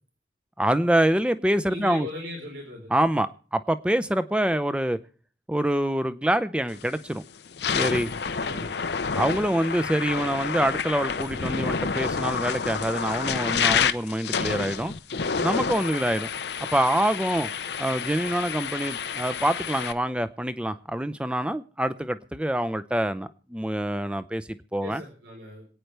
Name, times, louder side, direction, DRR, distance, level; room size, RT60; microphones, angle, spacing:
voice 1, 0.6-2.1 2.9-5.0 5.5-7.2 7.7-8.1 9.1-14.9 15.4-16.3 16.7-17.5 17.8-25.0, right 1 dB, 5° right, 0.5 m, -25 dB
voice 2, 1.7-2.9 8.3-8.8 24.8-25.7, left 1 dB, 85° right, 4.6 m, -38 dB
sound 1, 6.7-7.0 7.5-19.9, left 6 dB, 70° left, 0.7 m, -29 dB
26.5 x 9.2 x 3.3 m
head